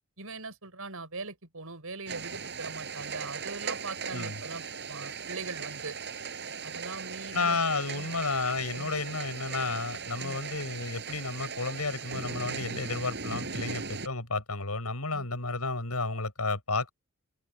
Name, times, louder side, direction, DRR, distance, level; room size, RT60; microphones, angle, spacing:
voice 1, 0.2-6.0 6.6-7.6 7.9-8.1 8.7-8.9 10.2-10.4 15.1-15.3, right 3 dB, 70° right, 7.6 m, -41 dB
sound 1, 2.1-14.1, right 5 dB, 50° right, 7.0 m, -38 dB
voice 2, 7.3-16.9, left 3 dB, 85° left, 6.5 m, -32 dB
open air
head